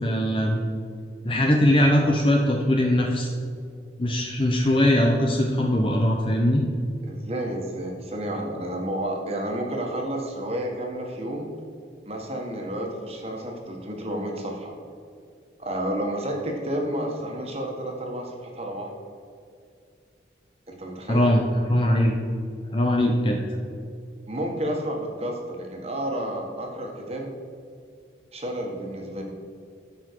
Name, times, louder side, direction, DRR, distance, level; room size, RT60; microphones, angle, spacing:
voice 1, 0.0-0.6 1.2-3.3 4.0-6.6 21.1-21.4 21.7-22.2 22.7-23.4, left 1 dB, 30° left, 1 dB, 0.8 m, -21 dB
voice 2, 7.0-11.5 12.0-14.8 15.6-18.9 20.7-21.3 24.3-27.3 28.3-29.2, right 1 dB, 35° right, 1 dB, 1.7 m, -31 dB
13.5 x 6.0 x 4.7 m, 2.3 s
head